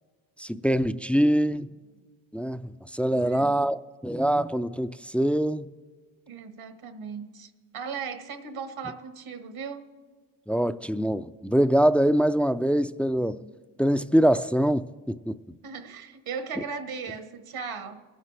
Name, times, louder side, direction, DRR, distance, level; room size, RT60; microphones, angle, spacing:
voice 1, 0.4-1.7 2.3-5.7 10.5-13.5 13.8-15.4, right 1 dB, 5° left, 0.3 m, -24 dB
voice 2, 3.1-3.6 6.3-9.9 15.6-18.0, right 5 dB, 70° right, 1.5 m, -37 dB
22.5 x 9.6 x 3.4 m
supercardioid pair, 50°, 49 cm